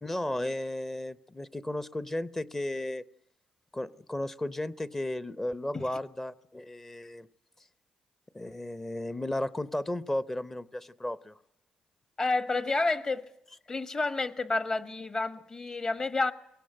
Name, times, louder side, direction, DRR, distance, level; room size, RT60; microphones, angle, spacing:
voice 1, 0.0-3.0 3.7-7.3 8.3-11.4, left 1 dB, 15° left, 0.7 m, -34 dB
voice 2, 12.2-13.2 13.7-16.3, left 3 dB, 30° left, 1.4 m, -29 dB
22.5 x 18.0 x 7.7 m
cardioid pair, 95°, 2 cm